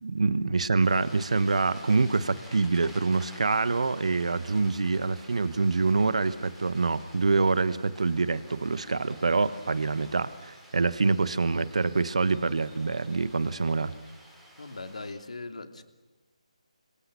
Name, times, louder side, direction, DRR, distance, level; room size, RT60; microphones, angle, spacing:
voice 1, 0.0-13.9, right 3 dB, 65° right, 14 dB, 1.3 m, -26 dB
sound 1, 0.8-15.1, right 1 dB, 5° right, 6.5 m, -51 dB
voice 2, 14.6-15.8, left 3 dB, 70° left, 7 dB, 3.1 m, -39 dB
29.0 x 26.0 x 7.0 m, 1.1 s
figure-of-eight pair, 155°, 4 cm